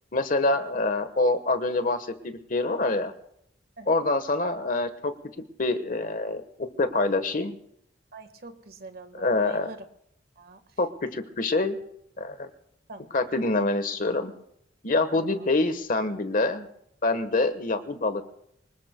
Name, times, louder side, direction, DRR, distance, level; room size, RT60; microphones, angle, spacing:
voice 1, 0.1-3.1 3.9-5.1 5.6-7.6 9.2-9.7 10.8-11.8 12.2-12.5 13.1-14.3 14.8-16.7 17.0-18.3, left 2 dB, 50° left, 10 dB, 1.2 m, -26 dB
voice 2, 8.1-9.9 10.4-10.6 12.9-13.2 15.1-15.5, right 2 dB, 55° right, 8 dB, 1.5 m, -44 dB
25.0 x 20.0 x 2.2 m, 0.75 s
head